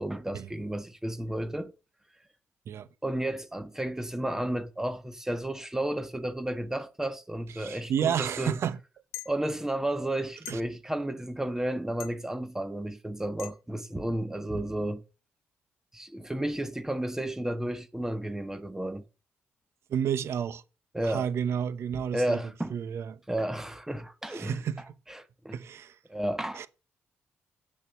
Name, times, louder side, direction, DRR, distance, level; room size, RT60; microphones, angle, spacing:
voice 1, 0.0-1.7 3.0-8.6 9.2-15.0 15.9-19.0 20.9-21.3 22.1-22.7 23.3-24.6 25.1-25.6 26.1-26.7, right 1 dB, 10° right, 1.2 m, -32 dB
voice 2, 7.5-8.8 10.5-10.6 19.9-20.6 21.0-22.4 22.7-23.2 24.3-24.9 25.5-26.0 26.5-26.7, right 8 dB, 70° right, 0.9 m, -31 dB
sound 1, 9.1-9.3 10.4-10.6 12.0-12.2 13.4-13.5, left 12 dB, 85° left, 1.1 m, -40 dB
8.5 x 6.8 x 6.8 m
cardioid pair, 85°, 5 cm